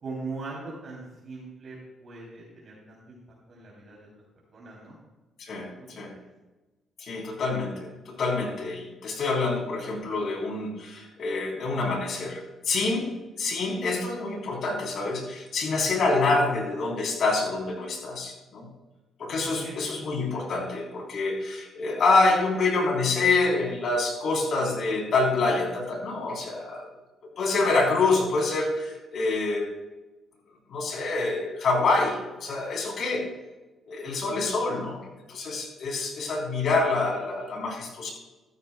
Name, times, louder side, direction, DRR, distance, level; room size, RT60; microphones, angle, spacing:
voice 1, 0.0-3.2 3.5-4.1 4.5-5.0 19.6-19.8, right 3 dB, 50° right, -4 dB, 2.9 m, -40 dB
voice 2, 5.4-6.1 7.0-13.1 13.4-18.7 19.2-26.9 27.4-29.7 30.7-33.2 33.9-35.0 35.3-38.1, left 3 dB, 65° left, 1 dB, 3.3 m, -26 dB
13.5 x 12.5 x 2.2 m, 1.1 s
cardioid pair, 90°, 0 cm